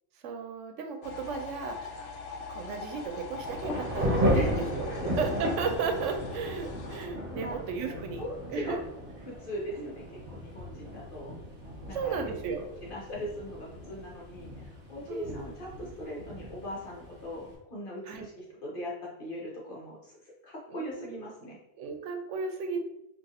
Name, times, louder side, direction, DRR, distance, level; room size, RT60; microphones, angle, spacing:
voice 1, 0.2-2.2 2.5-4.9 5.2-8.2 8.5-8.8 9.8-9.9 11.9-12.7 15.1-15.4 18.1-18.2 20.7-21.2 21.8-22.8, right 5 dB, 80° right, 5 dB, 0.9 m, -34 dB
sound 1, 1.0-7.1, left 4 dB, 65° left, 0.8 m, -42 dB
Thunder / Rain, 3.1-17.5, equal, 50° right, 0.9 m, -35 dB
voice 2, 7.3-8.8 9.2-10.0 10.3-11.4 11.8-12.4 12.8-20.2 20.4-21.6, equal, 50° left, -4 dB, 1.1 m, -40 dB
2.6 x 2.6 x 3.9 m, 0.84 s
omnidirectional pair, 1.2 m